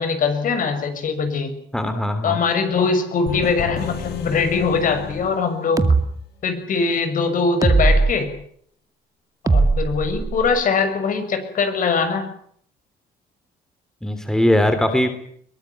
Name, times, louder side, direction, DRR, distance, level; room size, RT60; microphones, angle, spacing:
voice 1, 0.0-1.5 2.2-5.9 6.4-8.3 9.4-12.3, left 5 dB, 55° left, 9 dB, 6.4 m, -22 dB
voice 2, 1.7-2.4 14.0-15.1, left 1 dB, 5° left, 8 dB, 3.2 m, -20 dB
sound 1, 3.3-6.1, left 8 dB, 75° left, 5.1 m, -33 dB
sound 2, 5.8-6.0 7.6-8.1 9.5-10.6, right 3 dB, 20° right, 2.1 m, -18 dB
22.5 x 19.5 x 9.8 m, 0.65 s
cardioid pair, 110°, 17 cm